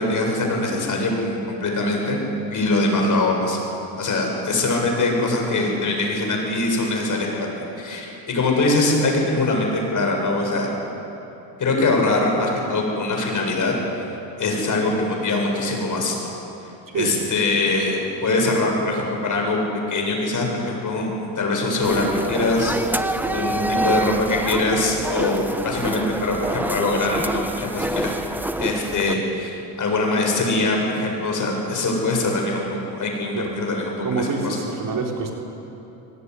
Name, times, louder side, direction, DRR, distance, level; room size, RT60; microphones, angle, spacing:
voice 1, 0.0-2.2 2.5-3.6 4.0-7.5 7.8-10.7 11.6-14.1 14.4-16.3 16.6-19.6 19.9-28.1 28.6-34.6, left 2 dB, 40° left, 1 dB, 8.0 m, -23 dB
voice 2, 16.9-17.3 23.1-24.1 33.3-33.6 34.0-35.3, right 4 dB, 45° right, 1 dB, 4.2 m, -28 dB
sound 1, 21.8-29.2, right 1 dB, 5° right, 1.0 m, -27 dB
24.0 x 19.5 x 9.9 m, 3.0 s
cardioid pair, 95°, 45 cm